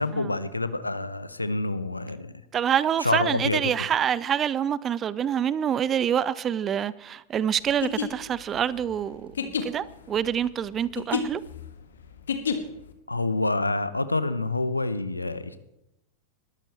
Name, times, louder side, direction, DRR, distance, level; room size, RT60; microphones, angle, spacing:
voice 1, 0.0-2.3 3.0-3.6 13.1-15.6, left 2 dB, 85° left, 0.9 m, -27 dB
voice 2, 2.5-11.4, right 9 dB, 25° right, 0.5 m, -26 dB
sound 1, 7.7-12.9, left 6 dB, 65° left, 1.6 m, -31 dB
20.5 x 13.5 x 3.4 m
figure-of-eight pair, 90°, 0 cm